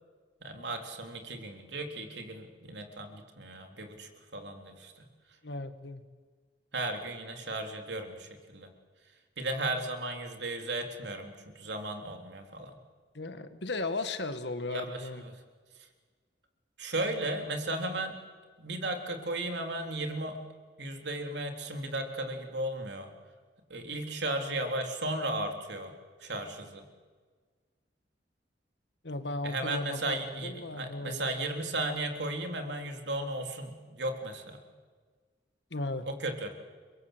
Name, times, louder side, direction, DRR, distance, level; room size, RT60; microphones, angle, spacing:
voice 1, 0.4-5.1 6.7-8.7 9.4-12.7 14.7-15.3 16.8-18.2 18.6-20.4 20.8-23.1 23.7-25.9 26.2-26.8 29.4-34.6 36.1-36.5, right 2 dB, 70° right, 4 dB, 3.6 m, -35 dB
voice 2, 5.4-6.0 13.1-15.2 29.0-31.5 35.7-36.1, left 2 dB, 70° left, 10 dB, 1.8 m, -36 dB
30.0 x 23.0 x 8.1 m, 1.5 s
head